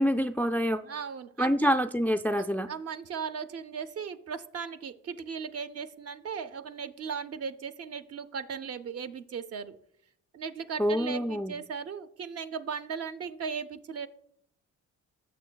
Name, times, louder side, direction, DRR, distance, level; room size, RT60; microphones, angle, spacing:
voice 1, 0.0-0.8 1.4-2.7 10.8-11.6, equal, 5° left, 8 dB, 0.3 m, -26 dB
voice 2, 0.8-1.7 2.4-9.8 10.3-14.1, right 6 dB, 55° right, 10 dB, 0.6 m, -37 dB
15.5 x 6.6 x 2.3 m, 0.71 s
cardioid pair, 90°, 30 cm